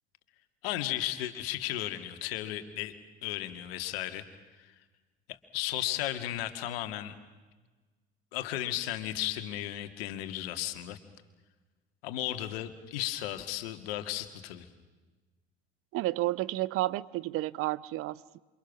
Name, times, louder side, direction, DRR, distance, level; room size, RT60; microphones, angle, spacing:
voice 1, 0.6-2.9 3.2-4.2 4.6-4.7 5.3-7.1 8.3-11.0 12.0-14.7, left 13 dB, 60° left, 9 dB, 2.2 m, -35 dB
voice 2, 15.9-18.4, right 17 dB, 40° right, 20 dB, 0.8 m, -31 dB
28.5 x 26.5 x 6.2 m, 1.2 s
figure-of-eight pair, 70°, 33 cm